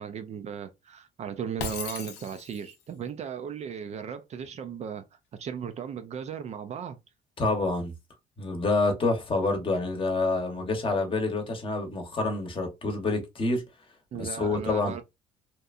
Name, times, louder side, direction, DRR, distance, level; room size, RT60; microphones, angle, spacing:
voice 1, 0.0-5.0 5.4-7.0 14.1-15.0, right 7 dB, 40° right, 0.4 m, -36 dB
Shatter, 1.6-2.8, left 6 dB, 90° left, 0.6 m, -37 dB
voice 2, 7.4-7.9 8.4-13.6 14.2-15.0, left 3 dB, 30° left, 0.8 m, -27 dB
2.8 x 2.2 x 2.4 m
cardioid pair, 110°, 17 cm